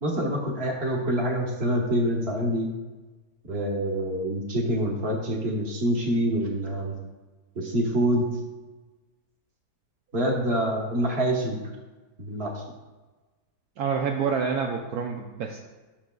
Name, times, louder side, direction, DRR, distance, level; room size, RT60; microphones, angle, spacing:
voice 1, 0.0-2.7 3.5-6.9 7.5-8.3 10.1-11.6 12.2-12.6, equal, 40° right, 0 dB, 1.4 m, -26 dB
voice 2, 13.8-15.6, right 6 dB, 75° right, 1 dB, 1.1 m, -27 dB
10.5 x 6.4 x 2.3 m, 1.2 s
omnidirectional pair, 1.8 m